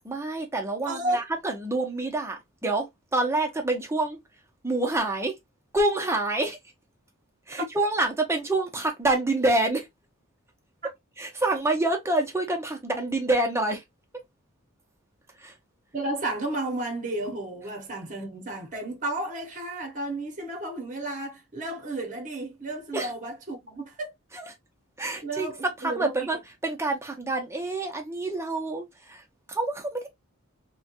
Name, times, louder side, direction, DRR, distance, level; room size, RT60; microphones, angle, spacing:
voice 1, 0.0-2.9 3.1-4.2 4.6-5.3 5.7-6.6 7.5-9.9 11.2-13.8 15.4-15.5 22.9-23.1 24.3-24.5 25.0-25.5 25.8-30.1, right 2 dB, 10° right, 0.7 m, -27 dB
voice 2, 0.9-1.2 7.6-7.7 15.9-24.1 25.2-26.1, right 2 dB, 35° right, 0.9 m, -32 dB
3.0 x 2.2 x 2.9 m
head